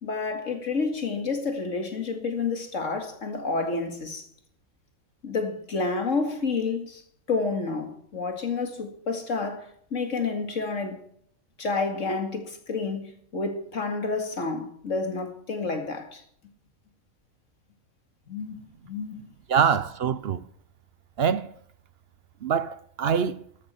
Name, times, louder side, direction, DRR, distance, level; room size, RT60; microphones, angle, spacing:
voice 1, 0.0-4.3 5.2-7.0 7.3-11.0 11.6-16.2 18.3-18.6 18.8-19.2, left 4 dB, 60° left, 2.5 m, -29 dB
voice 2, 19.5-20.4 21.2-21.5 22.4-23.4, right 7 dB, 55° right, 0.7 m, -24 dB
13.5 x 12.0 x 4.5 m
omnidirectional pair, 1.5 m